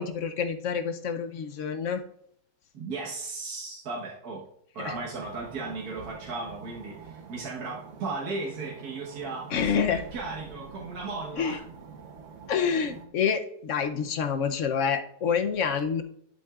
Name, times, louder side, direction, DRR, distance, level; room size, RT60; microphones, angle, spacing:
voice 1, 0.0-2.0 4.8-5.0 9.5-10.0 11.4-11.6 12.5-16.0, left 6 dB, 60° left, 8 dB, 0.9 m, -27 dB
voice 2, 2.7-4.5 4.7-11.6, right 3 dB, 70° right, -4 dB, 1.8 m, -36 dB
sound 1, 4.8-13.1, right 6 dB, 55° right, 1.2 m, -46 dB
sound 2, 9.5-13.0, left 2 dB, 85° left, 2.1 m, -48 dB
10.5 x 7.9 x 2.4 m, 0.70 s
omnidirectional pair, 1.7 m